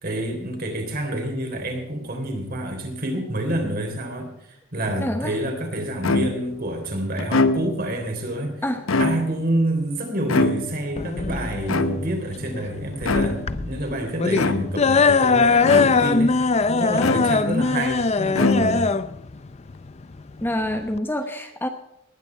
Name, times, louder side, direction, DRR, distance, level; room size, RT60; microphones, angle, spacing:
voice 1, 0.0-8.6 9.0-18.9, right 1 dB, 45° right, 4 dB, 3.5 m, -28 dB
voice 2, 5.0-5.4 8.6-8.8 20.4-21.7, left 1 dB, 10° left, 5 dB, 1.0 m, -26 dB
sound 1, 6.0-6.6 7.2-7.9 8.7-9.5 10.3-11.0 11.7-12.3 13.0-13.6 14.3-14.9 15.7-16.3 17.0-17.7 18.3-19.0, left 3 dB, 90° left, 1.0 m, -24 dB
sound 2, 11.0-21.0, left 4 dB, 30° left, 0.5 m, -21 dB
19.0 x 9.8 x 4.5 m, 0.87 s
head